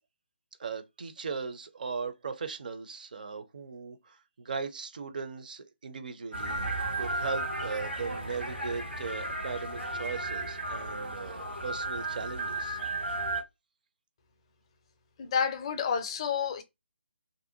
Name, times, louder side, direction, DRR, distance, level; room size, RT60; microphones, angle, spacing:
voice 1, 0.6-6.7 6.9-12.8, right 5 dB, 45° right, 0.5 m, -38 dB
sound 1, 6.3-13.4, right 2 dB, 75° right, 1.0 m, -34 dB
voice 2, 15.2-16.6, left 7 dB, 25° left, 0.4 m, -29 dB
2.6 x 2.1 x 2.7 m
figure-of-eight pair, 145°, 6 cm